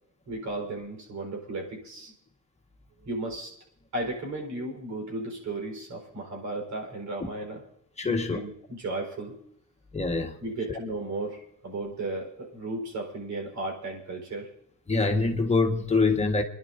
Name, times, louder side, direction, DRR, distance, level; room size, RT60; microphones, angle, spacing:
voice 1, 0.3-2.1 3.0-3.6 3.9-7.6 8.0-9.4 10.4-14.5, right 2 dB, 70° right, 2 dB, 4.4 m, -35 dB
voice 2, 8.0-8.4 9.9-10.4 10.7-10.8 14.9-16.4, left 3 dB, 20° left, 3 dB, 1.5 m, -24 dB
30.0 x 11.0 x 2.6 m, 0.74 s
cardioid pair, 90°, 30 cm